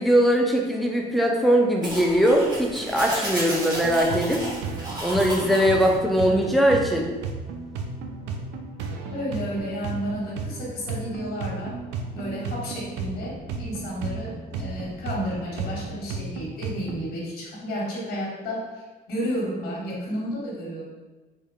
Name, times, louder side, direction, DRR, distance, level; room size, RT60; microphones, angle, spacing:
voice 1, 0.0-4.4 5.0-7.1, equal, ahead, 0 dB, 0.4 m, -21 dB
sound 1, 1.8-6.0, right 1 dB, 25° right, 1.0 m, -33 dB
sound 2, 3.7-17.0, right 4 dB, 85° right, 0.4 m, -34 dB
voice 2, 6.2-6.6 9.1-11.8 12.1-20.8, equal, 65° left, -4 dB, 1.3 m, -32 dB
3.4 x 3.2 x 2.3 m, 1.2 s
cardioid pair, 110°, 17 cm